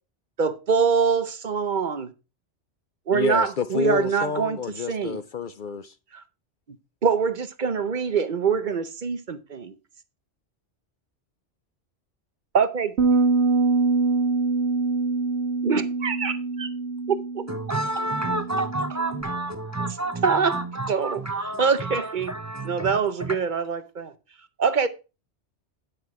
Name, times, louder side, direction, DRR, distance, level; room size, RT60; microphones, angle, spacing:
voice 1, 0.4-2.1 3.1-4.6 4.9-5.2 6.1-6.2 7.0-9.7 12.5-12.9 15.6-16.7 17.1-17.4 20.2-20.6 20.9-22.3 22.6-24.1 24.6-24.9, right 6 dB, 50° right, 0.8 m, -24 dB
voice 2, 3.1-5.9, left 5 dB, 55° left, 0.6 m, -29 dB
sound 1, 13.0-19.2, right 3 dB, 70° right, 1.0 m, -24 dB
voice 3, 17.5-23.4, right 2 dB, 25° right, 0.3 m, -30 dB
9.7 x 6.1 x 4.7 m
omnidirectional pair, 1.2 m